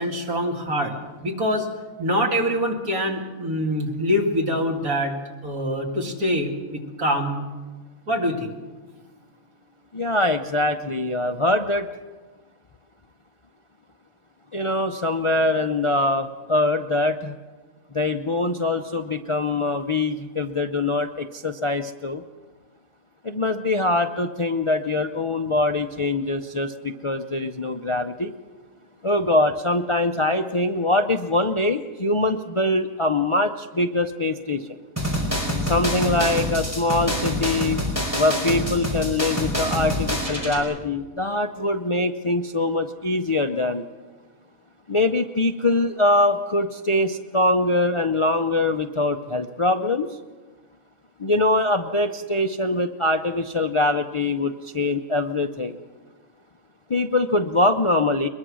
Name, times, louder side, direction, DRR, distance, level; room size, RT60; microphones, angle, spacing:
voice 1, 0.0-1.7 2.0-5.1 5.4-7.4 8.1-8.5, equal, 80° right, 1 dB, 2.8 m, -24 dB
voice 2, 9.9-11.9 14.5-17.4 17.9-22.2 23.2-28.3 29.0-34.7 35.6-37.8 38.2-43.8 44.9-50.1 51.2-55.8 56.9-58.3, left 2 dB, 40° left, 7 dB, 0.4 m, -23 dB
sound 1, 35.0-40.6, left 1 dB, 10° right, 4.9 m, -26 dB
22.5 x 21.5 x 6.3 m, 1.3 s
omnidirectional pair, 1.5 m